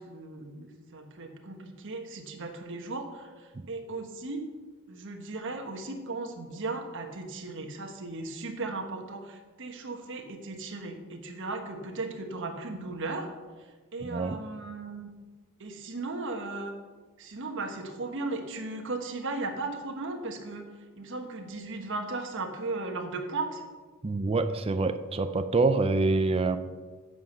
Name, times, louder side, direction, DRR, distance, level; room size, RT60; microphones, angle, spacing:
voice 1, 0.0-4.5 4.9-13.3 13.6-15.1 15.6-16.7 17.2-20.6 20.9-23.6, right 3 dB, 60° right, 4 dB, 1.4 m, -36 dB
voice 2, 14.0-14.4 24.0-26.6, right 3 dB, 25° right, 10 dB, 0.4 m, -26 dB
9.2 x 7.1 x 6.8 m, 1.4 s
head